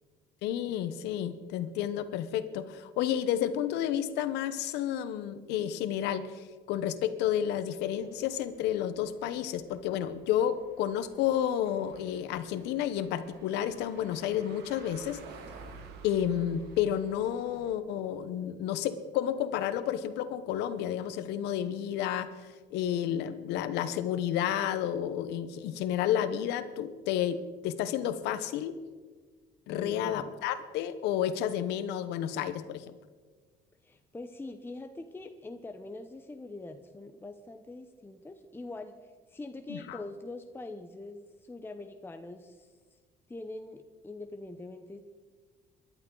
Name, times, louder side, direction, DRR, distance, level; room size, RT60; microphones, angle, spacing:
voice 1, 0.4-15.2 16.0-22.3 22.7-28.8 29.7-32.9 39.7-40.0, left 10 dB, 90° left, 12 dB, 1.0 m, -31 dB
sound 1, 7.7-17.8, right 4 dB, 80° right, 1.8 m, -53 dB
voice 2, 29.7-30.3 33.8-42.7 43.3-45.0, left 2 dB, 15° left, 6 dB, 0.8 m, -43 dB
23.5 x 11.5 x 3.9 m, 1.5 s
cardioid pair, 110°, 17 cm